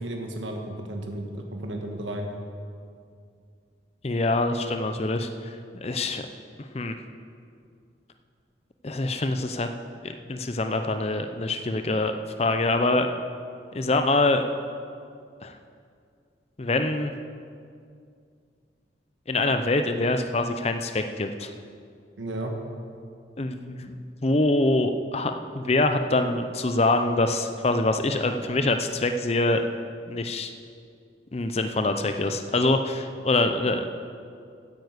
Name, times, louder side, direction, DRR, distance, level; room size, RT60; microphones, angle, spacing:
voice 1, 0.0-2.3 22.2-22.5, right 1 dB, 90° right, 2 dB, 1.4 m, -33 dB
voice 2, 4.0-5.6 5.8-6.2 6.7-6.9 8.8-9.7 10.0-13.1 13.7-14.4 15.4-15.6 16.6-17.1 19.3-21.5 23.4-29.6 30.1-30.5 31.3-33.9, left 2 dB, 35° left, 7 dB, 0.6 m, -25 dB
9.8 x 9.1 x 8.1 m, 2.3 s
head